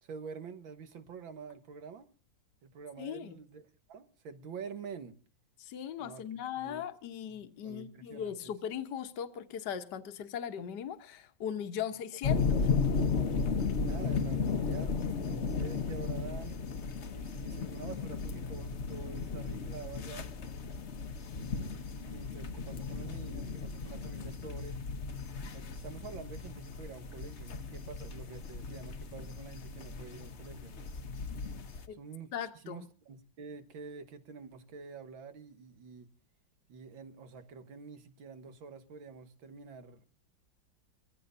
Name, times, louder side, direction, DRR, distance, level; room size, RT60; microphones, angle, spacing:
voice 1, 0.0-2.1 2.6-5.2 6.0-6.3 6.6-6.8 7.3-8.6 12.5-12.6 13.2-16.6 17.1-20.3 21.3-24.8 25.5-30.8 31.9-36.1 36.7-40.1, right 5 dB, 85° right, 2.3 m, -47 dB
voice 2, 3.0-3.4 5.6-12.6 31.9-32.0 32.3-32.9, left 9 dB, 65° left, 1.7 m, -39 dB
sound 1, 12.2-31.9, left 5 dB, 45° left, 1.1 m, -35 dB
24.5 x 15.5 x 2.6 m
omnidirectional pair, 2.1 m